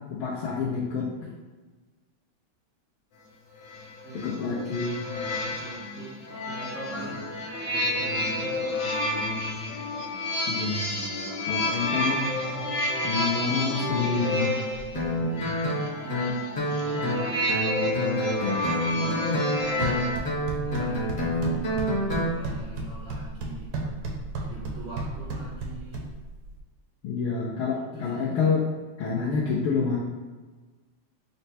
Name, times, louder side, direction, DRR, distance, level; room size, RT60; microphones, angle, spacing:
voice 1, 0.1-1.1 4.1-5.0 10.5-10.9 11.5-12.3 13.0-14.6 27.0-28.7 29.0-30.0, left 5 dB, 85° left, -6 dB, 1.5 m, -27 dB
sound 1, 3.6-20.2, left 1 dB, 65° left, 0.9 m, -30 dB
voice 2, 4.0-7.2 7.7-9.1 15.8-16.4 17.2-18.7 19.0-20.0 20.6-23.9 24.4-26.1 27.9-28.3, right 2 dB, 85° right, -7 dB, 0.6 m, -43 dB
Guitar, 14.9-22.3, equal, 40° left, 0.7 m, -28 dB
sound 2, 19.6-26.6, right 2 dB, 70° right, 0.9 m, -34 dB
4.3 x 2.1 x 4.1 m, 1.3 s
omnidirectional pair, 2.3 m